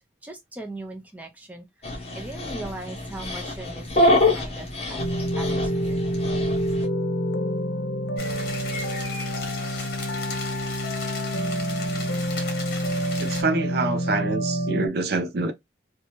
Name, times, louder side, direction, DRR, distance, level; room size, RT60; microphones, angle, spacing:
voice 1, 0.2-5.0 5.4-6.0, right 2 dB, 10° right, 0.6 m, -39 dB
Dog, 1.8-6.9, left 1 dB, 35° left, 1.0 m, -26 dB
sound 1, 5.0-14.9, equal, 85° left, 0.6 m, -27 dB
sound 2, 8.2-13.4, left 4 dB, 55° left, 1.1 m, -36 dB
voice 2, 13.2-15.5, right 3 dB, 55° right, 0.5 m, -26 dB
2.8 x 2.3 x 2.9 m
head